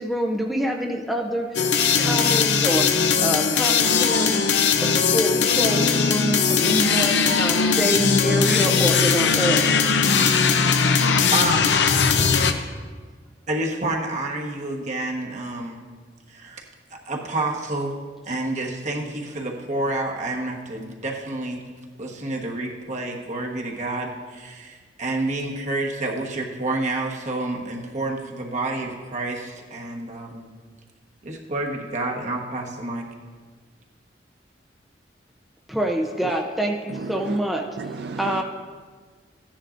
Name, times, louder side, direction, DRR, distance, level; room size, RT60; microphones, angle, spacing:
voice 1, 0.0-1.6 2.0-4.4 4.8-9.7 35.7-37.7 38.2-38.4, right 1 dB, ahead, 1 dB, 0.6 m, -26 dB
sound 1, 1.5-12.5, left 5 dB, 75° left, 0.6 m, -19 dB
voice 2, 11.3-11.8 13.5-15.8 16.3-16.6 16.9-18.0 18.2-21.6 22.0-30.5 31.2-33.1, right 2 dB, 40° right, 0 dB, 1.2 m, -29 dB
voice 3, 36.9-37.4 37.8-38.4, right 4 dB, 65° right, 7 dB, 0.4 m, -34 dB
15.5 x 10.0 x 2.5 m, 1.5 s
head